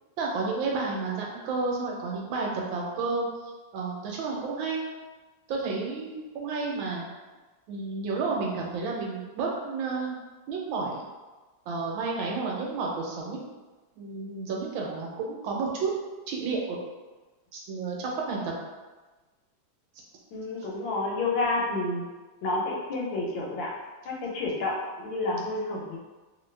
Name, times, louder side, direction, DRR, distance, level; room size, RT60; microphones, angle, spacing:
voice 1, 0.2-3.3 3.7-4.8 5.5-7.0 7.7-10.1 10.5-11.0 11.7-13.4 14.0-15.9 16.3-16.8 17.5-18.5, right 4 dB, 85° right, -1 dB, 1.4 m, -31 dB
voice 2, 20.3-22.1 22.4-23.7 24.0-26.0, left 2 dB, 75° left, -2 dB, 1.4 m, -29 dB
3.0 x 2.7 x 3.2 m, 1.2 s
omnidirectional pair, 2.2 m